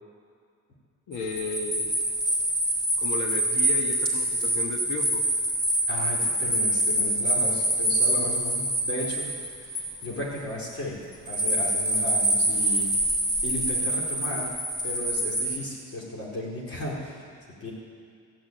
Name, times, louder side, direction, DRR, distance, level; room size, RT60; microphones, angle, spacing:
voice 1, 1.1-1.9 3.0-5.2, left 3 dB, 85° left, 3 dB, 1.6 m, -34 dB
sound 1, 1.1-10.4 11.3-15.6, right 1 dB, 15° left, 3.3 m, -26 dB
voice 2, 5.9-9.3 9.6-11.0 11.2-12.9 13.4-14.5 14.8-17.3 17.6-17.7, left 1 dB, 50° left, -5 dB, 4.2 m, -35 dB
15.0 x 6.4 x 9.2 m, 2.2 s
cardioid pair, 90°, 30 cm